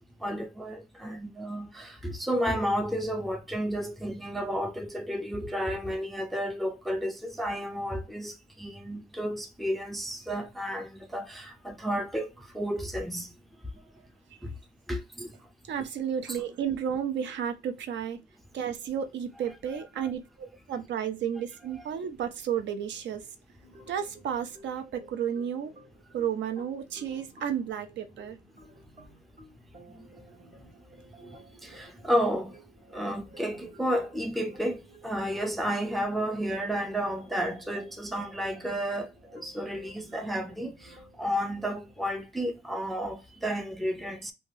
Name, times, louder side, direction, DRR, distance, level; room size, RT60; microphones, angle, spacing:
voice 1, 0.2-13.3 14.9-15.3 15.8-15.9 16.3-16.4 19.5-20.1 21.7-21.8 31.2-31.4 31.6-32.6 32.9-44.3, equal, ahead, 0.3 m, -32 dB
voice 2, 15.7-18.2 18.5-23.3 23.9-25.7 26.1-28.4, right 8 dB, 80° right, 0.5 m, -32 dB
sound 1, 23.6-42.2, right 1 dB, 60° right, 1.3 m, -54 dB
3.2 x 2.2 x 2.6 m
wide cardioid pair, 170°, 18 cm